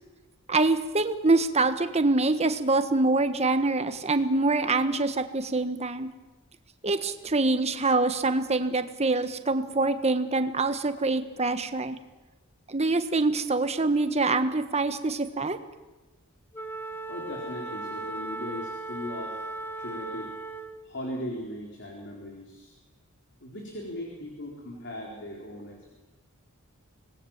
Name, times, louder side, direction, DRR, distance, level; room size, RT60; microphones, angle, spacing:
voice 1, 0.5-6.1 6.8-12.0 12.7-15.6, right 3 dB, 30° right, 9 dB, 1.4 m, -25 dB
Wind instrument woodwind instrument, 16.5-20.9, right 2 dB, 10° left, 1.2 m, -37 dB
voice 2, 17.1-20.3 20.8-22.8 23.4-25.9, left 1 dB, 55° left, 0 dB, 4.0 m, -38 dB
26.0 x 20.0 x 7.3 m, 1.2 s
head